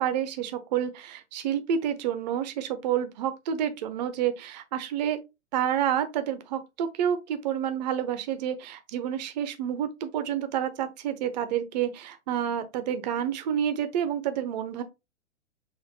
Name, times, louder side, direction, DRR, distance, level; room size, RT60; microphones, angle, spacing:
voice 1, 0.0-5.2 5.5-14.8, right 9 dB, 35° right, 0.6 m, -29 dB
6.0 x 2.5 x 2.7 m
figure-of-eight pair, 115°, 38 cm